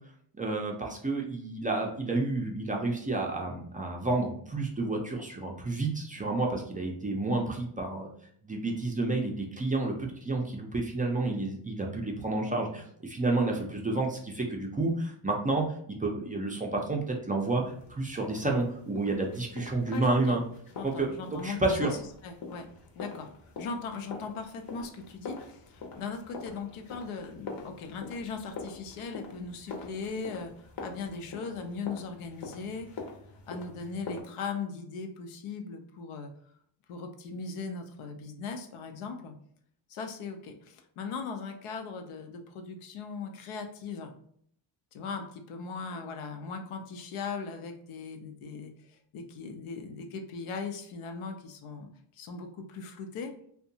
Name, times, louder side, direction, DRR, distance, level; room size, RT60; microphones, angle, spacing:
voice 1, 0.4-8.1 8.4-20.4 20.8-21.9, right 2 dB, 20° right, 0 dB, 0.3 m, -30 dB
sound 1, 17.5-34.2, left 4 dB, 45° left, 0.7 m, -45 dB
voice 2, 19.9-20.4 20.7-22.7 23.0-23.3 23.6-30.5 30.8-32.9 33.5-36.3 36.9-39.3 39.9-44.1 44.9-51.9 52.1-53.3, left 5 dB, 85° left, 5 dB, 0.6 m, -39 dB
2.7 x 2.2 x 2.6 m, 0.64 s
cardioid pair, 95°, 49 cm